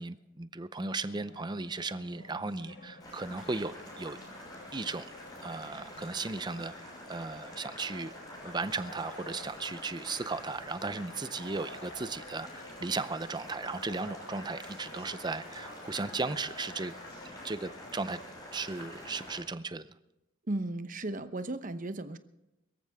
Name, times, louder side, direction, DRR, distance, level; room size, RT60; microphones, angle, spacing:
voice 1, 0.0-4.2 4.7-5.1 5.4-8.1 8.4-16.9 17.3-18.2 18.5-19.9, right 3 dB, 20° right, 13 dB, 0.6 m, -36 dB
sound 1, 0.7-18.2, left 2 dB, 60° left, 4.4 m, -51 dB
Boiling, 3.0-19.4, left 1 dB, 20° left, 6.4 m, -47 dB
voice 2, 20.5-22.2, right 2 dB, 40° right, 10 dB, 0.9 m, -35 dB
23.0 x 14.0 x 3.6 m, 0.92 s
head